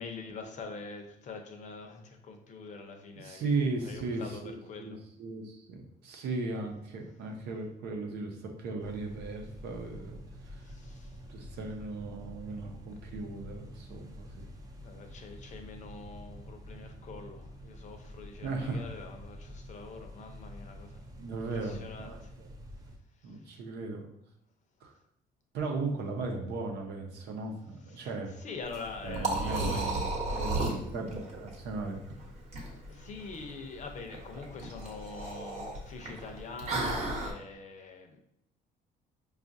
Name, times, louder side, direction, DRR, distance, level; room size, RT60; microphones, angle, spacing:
voice 1, 0.0-5.0 10.6-11.2 12.8-12.9 14.8-22.3 23.2-23.6 27.9-28.1 28.4-30.0 32.9-38.2, left 4 dB, 45° left, 4 dB, 0.6 m, -45 dB
voice 2, 3.2-10.2 10.5-10.7 11.3-14.4 18.4-18.8 21.2-22.5 23.2-24.0 24.8-24.9 25.5-28.3 29.0-32.0, right 3 dB, 80° right, 3 dB, 0.7 m, -37 dB
sound 1, 8.8-23.0, equal, 20° right, 0.5 m, -48 dB
Liquid, 28.6-37.3, right 2 dB, 40° right, 1.0 m, -35 dB
4.8 x 2.4 x 2.6 m, 0.74 s
cardioid pair, 110°, 17 cm